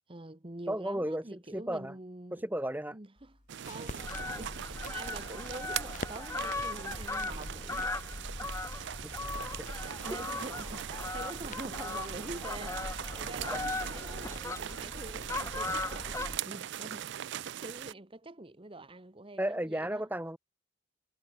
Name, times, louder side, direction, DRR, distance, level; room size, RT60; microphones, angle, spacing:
voice 1, 0.1-2.4 2.9-9.2 9.6-20.1, right 2 dB, 25° right, 1.1 m, -46 dB
voice 2, 0.7-1.9 2.3-3.0 9.0-9.3 9.6-9.7 19.4-20.4, right 1 dB, 10° right, 1.9 m, -34 dB
sound 1, 3.2-14.4, left 3 dB, 35° left, 1.8 m, -51 dB
sound 2, 3.5-17.9, right 10 dB, 55° right, 0.4 m, -41 dB
Fowl, 4.0-16.4, left 2 dB, 15° left, 0.8 m, -38 dB
head